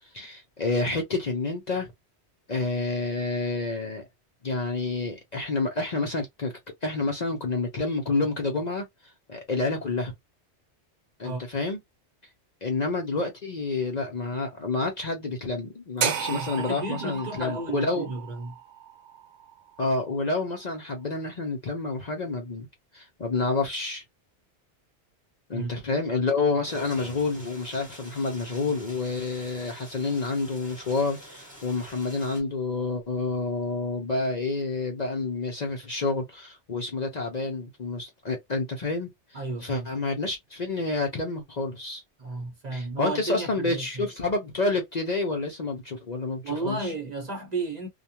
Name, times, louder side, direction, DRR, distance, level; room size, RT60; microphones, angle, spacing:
voice 1, 0.1-1.9 2.5-4.1 4.4-6.5 6.8-8.9 9.3-10.1 11.2-11.8 12.6-18.1 19.8-22.7 22.9-24.0 25.5-39.1 39.6-42.0 42.7-46.9, left 3 dB, 45° left, 0.7 m, -29 dB
sound 1, 16.0-20.1, right 8 dB, 80° right, 1.0 m, -33 dB
voice 2, 16.3-18.6 25.5-25.7 39.3-39.9 42.2-44.1 46.4-47.9, right 3 dB, 40° right, 0.8 m, -33 dB
sound 2, 26.6-32.4, equal, 5° right, 1.1 m, -45 dB
2.4 x 2.2 x 2.8 m
omnidirectional pair, 1.2 m